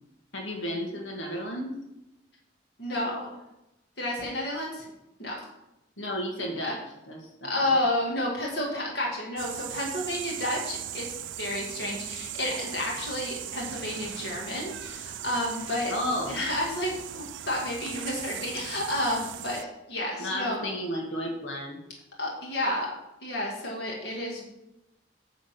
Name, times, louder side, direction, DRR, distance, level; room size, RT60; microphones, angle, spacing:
voice 1, 0.3-1.8 6.0-7.8 15.9-16.4 20.2-21.8, equal, 80° left, 1 dB, 1.9 m, -33 dB
voice 2, 2.8-3.3 4.0-4.9 5.2-5.4 7.4-15.9 16.3-20.6 22.2-22.9 23.2-24.4, left 1 dB, 60° left, -2 dB, 1.9 m, -31 dB
sound 1, 9.4-19.6, right 11 dB, 75° right, 0.4 m, -39 dB
9.4 x 3.8 x 7.2 m, 0.91 s
head